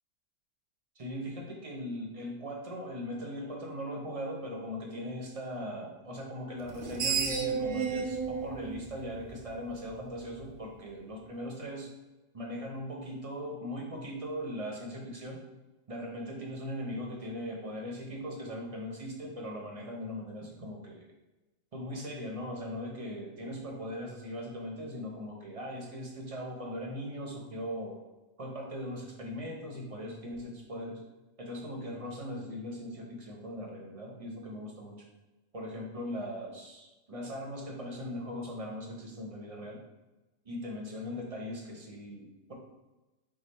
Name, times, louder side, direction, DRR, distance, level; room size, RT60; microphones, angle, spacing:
voice 1, 1.0-11.9 12.3-15.4 15.9-21.1 21.7-28.0 28.4-31.0 31.4-35.0 35.5-39.8 40.4-42.5, equal, 35° right, -1 dB, 0.6 m, -39 dB
Screech, 6.6-9.9, right 6 dB, 85° right, 1.1 m, -33 dB
4.9 x 2.4 x 4.1 m, 1.1 s
omnidirectional pair, 1.4 m